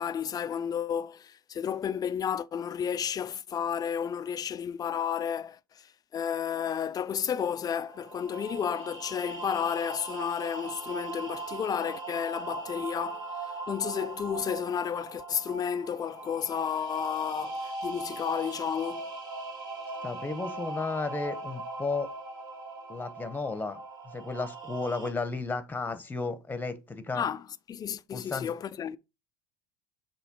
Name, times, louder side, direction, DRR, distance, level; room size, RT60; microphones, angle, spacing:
voice 1, 0.0-19.1 27.1-29.0, left 8 dB, 35° left, 0.6 m, -32 dB
sound 1, 7.8-25.1, right 2 dB, 35° right, 2.1 m, -40 dB
voice 2, 20.0-22.1 22.9-23.8 24.0-27.2 28.1-28.5, left 3 dB, 15° left, 1.2 m, -33 dB
7.1 x 3.2 x 4.5 m
hypercardioid pair, 85°, 12 cm